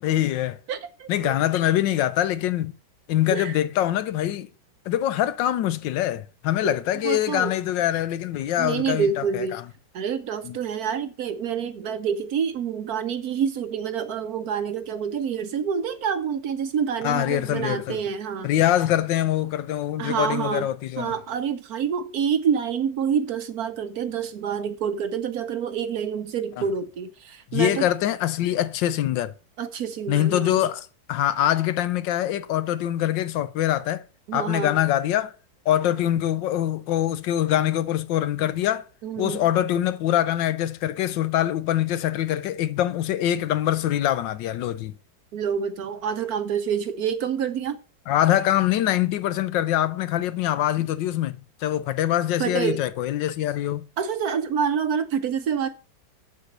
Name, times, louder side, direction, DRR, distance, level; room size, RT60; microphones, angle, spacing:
voice 1, 0.0-0.6 1.1-2.7 3.1-4.5 4.9-9.1 9.3-9.6 10.4-10.5 17.0-18.0 18.4-21.1 27.5-29.3 30.1-34.0 34.3-35.3 35.7-38.8 39.2-44.9 48.1-53.9, left 12 dB, 80° left, 1.3 m, -24 dB
voice 2, 0.7-1.3 3.3-3.6 6.6-6.7 7.0-7.5 8.6-9.6 9.9-18.5 20.0-20.7 21.0-27.8 29.6-30.6 34.3-34.7 39.0-39.4 45.3-47.8 52.4-52.8 54.0-55.7, right 7 dB, 65° right, 1.1 m, -27 dB
7.1 x 6.6 x 6.6 m
omnidirectional pair, 2.0 m